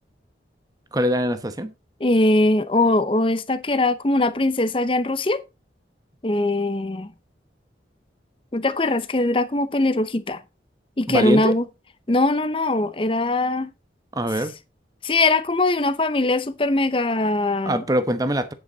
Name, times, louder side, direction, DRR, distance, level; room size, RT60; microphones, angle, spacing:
voice 1, 0.9-1.7 11.1-11.5 14.1-14.5 17.6-18.5, equal, 20° right, 1.0 m, -23 dB
voice 2, 2.0-5.4 6.2-7.1 8.5-10.4 11.0-11.6 12.1-13.7 15.0-17.8, left 2 dB, 30° left, 0.7 m, -21 dB
9.4 x 8.5 x 4.0 m
head